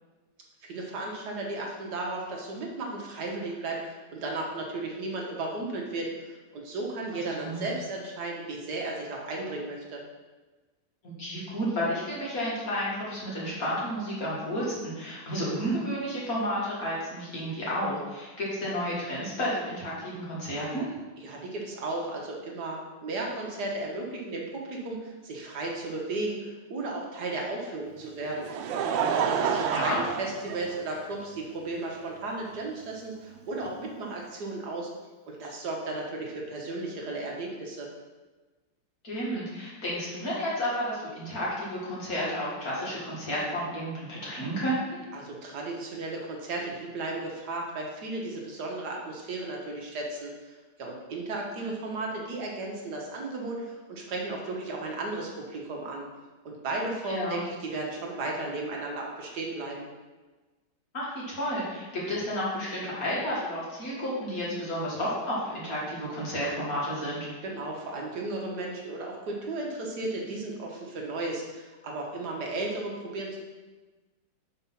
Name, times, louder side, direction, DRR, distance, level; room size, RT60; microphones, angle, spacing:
voice 1, 0.6-10.0 21.2-28.5 29.0-34.9 35.3-37.9 45.1-56.0 56.4-59.9 67.4-73.4, right 2 dB, 65° right, -1 dB, 1.5 m, -35 dB
voice 2, 11.0-20.9 29.5-30.0 39.0-45.0 51.6-51.7 57.1-57.4 60.9-67.3, equal, 50° left, -7 dB, 2.3 m, -31 dB
Laughter, 28.0-31.2 32.1-32.2 33.6-33.7, right 7 dB, 85° right, 1.3 m, -29 dB
5.5 x 4.5 x 5.7 m, 1.2 s
omnidirectional pair, 2.0 m